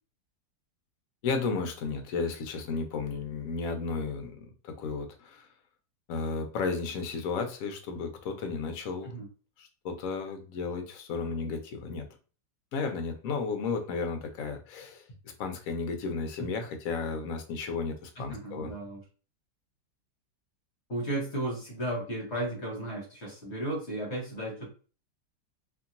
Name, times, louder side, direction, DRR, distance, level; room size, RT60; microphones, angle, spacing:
voice 1, 1.2-5.5 6.1-9.1 9.6-12.1 12.7-18.7, left 4 dB, 70° left, 5 dB, 0.8 m, -33 dB
voice 2, 18.2-19.0 20.9-24.7, right 1 dB, 45° left, -2 dB, 1.1 m, -34 dB
2.9 x 2.7 x 2.5 m, 0.37 s
omnidirectional pair, 2.0 m